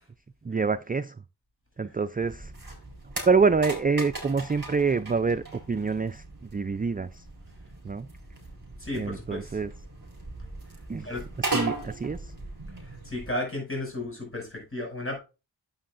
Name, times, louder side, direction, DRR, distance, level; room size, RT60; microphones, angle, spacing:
voice 1, 0.4-1.2 1.8-2.5 3.3-7.3 7.8-8.1 8.9-9.7 10.9-11.1 11.4-12.3, right 4 dB, 20° right, 13 dB, 0.3 m, -26 dB
sound 1, 2.2-13.3, right 2 dB, 45° right, 4.9 m, -38 dB
voice 2, 8.8-9.6 11.0-11.2 12.8-15.2, left 1 dB, 25° left, 1 dB, 5.9 m, -34 dB
11.5 x 7.6 x 2.5 m, 0.29 s
wide cardioid pair, 50°, 47 cm